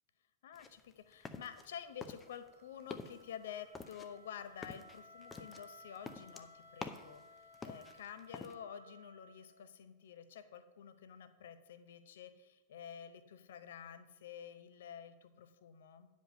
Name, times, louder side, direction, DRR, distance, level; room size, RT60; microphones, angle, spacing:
voice 1, 0.4-7.2 7.6-16.1, left 8 dB, 60° left, 11 dB, 0.7 m, -50 dB
sound 1, 0.5-1.7 2.0-2.5 2.8-3.2 3.7-7.2 7.5-8.5, left 4 dB, 20° left, 0.7 m, -48 dB
Wind instrument woodwind instrument, 1.8-9.8, equal, 90° left, 0.9 m, -60 dB
10.0 x 5.2 x 6.5 m, 1.0 s
figure-of-eight pair, 90°, 0 cm